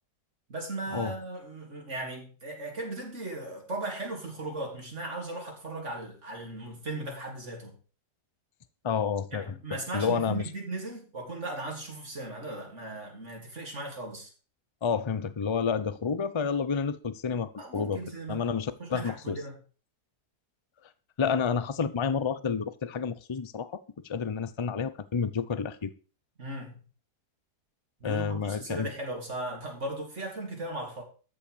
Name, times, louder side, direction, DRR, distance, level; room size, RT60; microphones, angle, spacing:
voice 1, 0.5-7.7 9.3-14.3 17.6-18.4 18.8-19.6 26.4-26.7 28.0-31.0, right 2 dB, 45° right, 3.9 m, -37 dB
voice 2, 8.8-10.5 14.8-18.0 18.3-19.4 21.2-25.9 28.0-28.9, left 6 dB, 30° left, 0.5 m, -30 dB
13.5 x 5.7 x 6.8 m
omnidirectional pair, 1.7 m